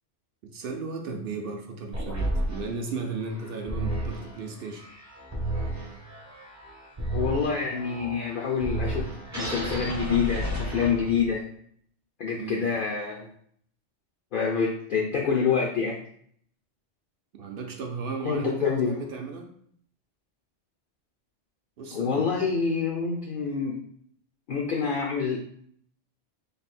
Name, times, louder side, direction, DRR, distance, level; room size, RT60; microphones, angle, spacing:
voice 1, 0.4-4.9 12.4-12.7 17.3-19.5 21.8-22.5, right 4 dB, 60° right, 3 dB, 0.7 m, -35 dB
sound 1, 1.9-11.4, right 1 dB, 20° right, 0.6 m, -33 dB
voice 2, 7.1-9.1 9.3-11.4 12.2-13.3 14.3-16.0 18.2-19.0 21.9-23.8 24.5-25.4, left 6 dB, 60° left, -1 dB, 0.6 m, -27 dB
3.3 x 2.2 x 4.1 m, 0.63 s
omnidirectional pair, 1.2 m